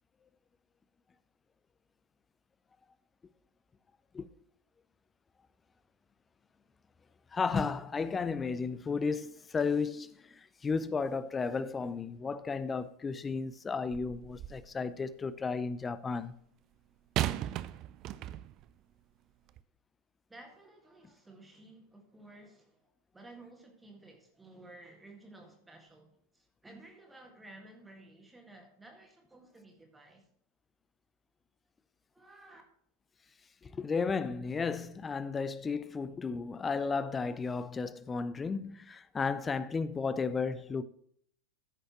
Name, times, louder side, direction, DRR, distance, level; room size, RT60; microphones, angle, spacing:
voice 1, 7.3-16.4 33.6-40.8, left 5 dB, 15° left, 0.5 m, -33 dB
sound 1, 13.9-14.7 17.2-18.7 19.5-19.6, right 13 dB, 35° right, 0.4 m, -36 dB
voice 2, 20.3-22.9 23.1-30.3 32.1-32.6, right 2 dB, 10° right, 1.7 m, -54 dB
14.5 x 6.4 x 3.0 m
figure-of-eight pair, 90°, 0 cm